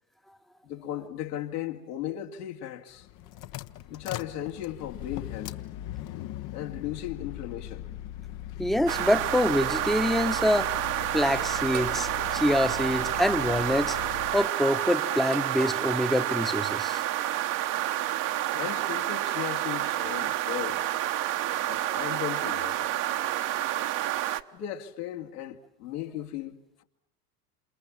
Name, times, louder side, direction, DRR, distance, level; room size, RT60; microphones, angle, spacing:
voice 1, 0.6-3.1 3.9-5.6 6.5-7.9 11.2-11.4 18.5-20.8 21.7-22.9 24.5-26.8, left 12 dB, 70° left, 2.7 m, -36 dB
sound 1, 2.9-14.5, left 13 dB, 40° left, 1.1 m, -40 dB
voice 2, 8.6-10.7 11.1-14.0 14.3-17.0, left 1 dB, ahead, 1.2 m, -25 dB
sound 2, 8.9-24.4, right 13 dB, 40° right, 1.3 m, -29 dB
sound 3, 11.7-12.1 13.3-13.6 15.2-15.9, right 12 dB, 75° right, 2.6 m, -40 dB
28.5 x 28.0 x 7.3 m
hypercardioid pair, 85°, 47 cm